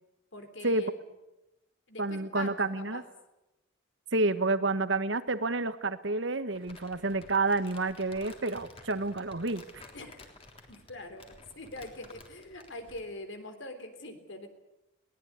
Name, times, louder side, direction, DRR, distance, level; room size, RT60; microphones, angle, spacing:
voice 1, 0.3-1.0 1.9-3.1 9.9-10.2 10.7-14.5, left 2 dB, 65° left, 7 dB, 3.6 m, -43 dB
voice 2, 2.0-3.0 4.1-9.6, right 2 dB, 65° right, 12 dB, 1.5 m, -29 dB
Crumpling crinkling, 6.5-13.1, left 2 dB, 30° left, 3.6 m, -53 dB
22.5 x 19.0 x 9.6 m, 0.92 s
head